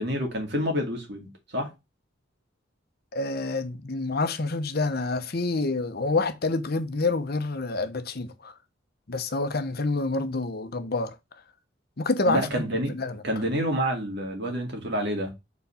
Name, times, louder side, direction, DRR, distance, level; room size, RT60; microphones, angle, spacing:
voice 1, 0.0-1.7 12.3-13.0 13.2-15.3, equal, 60° right, 2.2 m, -28 dB
voice 2, 3.1-8.5 9.1-11.2 12.0-13.2, left 3 dB, 55° left, 0.8 m, -28 dB
4.7 x 4.1 x 5.5 m
head